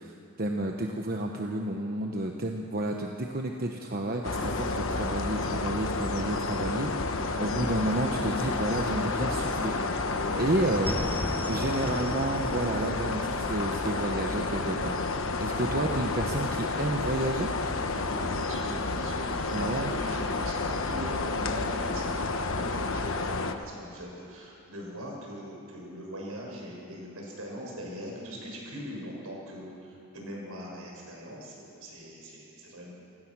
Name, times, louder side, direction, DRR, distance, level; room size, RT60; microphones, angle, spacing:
voice 1, 0.0-10.9 11.5-15.0 15.4-17.5 19.5-19.9, right 1 dB, 40° right, 2 dB, 1.1 m, -31 dB
sound 1, 4.2-23.5, left 3 dB, 60° left, 1.2 m, -30 dB
sound 2, 7.8-9.5 9.8-13.3, left 1 dB, 5° left, 0.8 m, -38 dB
voice 2, 10.2-10.5 11.4-11.5 17.7-32.9, equal, 70° right, -2 dB, 6.2 m, -41 dB
28.5 x 17.5 x 6.3 m, 2.6 s
head